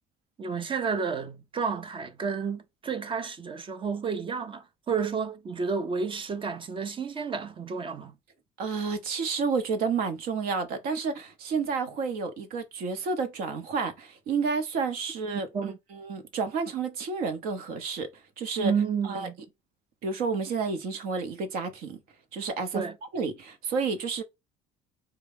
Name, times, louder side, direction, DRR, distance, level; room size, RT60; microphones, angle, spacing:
voice 1, 0.4-8.1 15.3-15.8 18.6-19.3 22.7-23.0, right 6 dB, 30° right, 0.6 m, -31 dB
voice 2, 8.6-18.1 18.4-18.7 19.0-19.3 20.0-22.0 22.3-22.8 23.1-24.2, right 5 dB, 65° right, 0.9 m, -30 dB
3.9 x 2.3 x 3.3 m
supercardioid pair, 85°, 16 cm